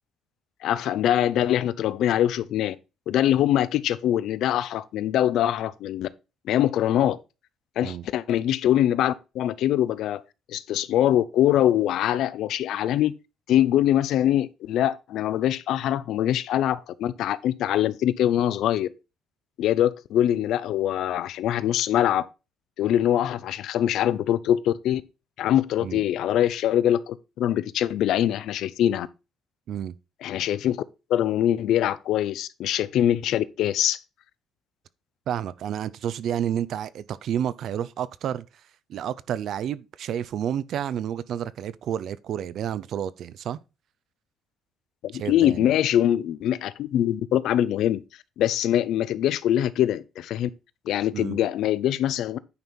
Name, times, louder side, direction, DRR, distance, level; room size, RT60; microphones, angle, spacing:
voice 1, 0.6-2.8 3.1-6.1 6.5-7.2 7.8-10.2 10.5-13.1 13.5-18.9 19.6-22.3 22.8-25.0 25.4-29.1 30.2-30.8 31.1-34.0 45.0-48.0 48.4-50.5 50.9-52.4, left 11 dB, 70° left, 0.6 m, -23 dB
voice 2, 35.3-38.5 38.9-43.6 45.1-45.7 51.1-51.4, right 9 dB, 55° right, 0.5 m, -30 dB
9.6 x 5.3 x 4.5 m
cardioid pair, 160°, 0 cm